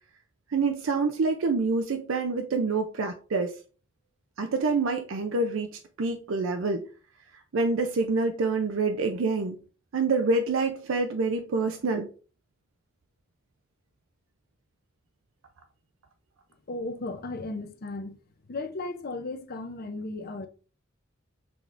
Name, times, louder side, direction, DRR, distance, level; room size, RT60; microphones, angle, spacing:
voice 1, 0.5-3.5 4.4-6.8 7.5-9.6 9.9-12.1, right 3 dB, 75° right, 0.5 m, -27 dB
voice 2, 16.7-18.2 18.5-20.5, left 2 dB, 50° left, 0.6 m, -35 dB
6.0 x 3.5 x 2.5 m
head